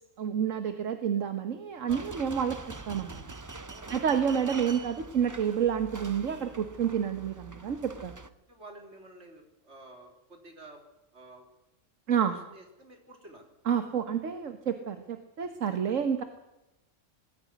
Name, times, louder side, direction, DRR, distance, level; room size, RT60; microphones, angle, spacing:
voice 1, 0.2-2.6 2.9-3.2 3.9-8.1 12.1-12.3 13.7-16.2, right 8 dB, 80° right, 8 dB, 1.6 m, -29 dB
sound 1, 1.9-8.3, right 3 dB, 20° right, 0.6 m, -44 dB
voice 2, 3.7-4.0 8.5-10.8 11.1-11.5 12.2-13.5 15.9-16.0, right 2 dB, 60° right, 3 dB, 3.9 m, -50 dB
20.0 x 14.0 x 9.5 m, 0.92 s
omnidirectional pair, 1.3 m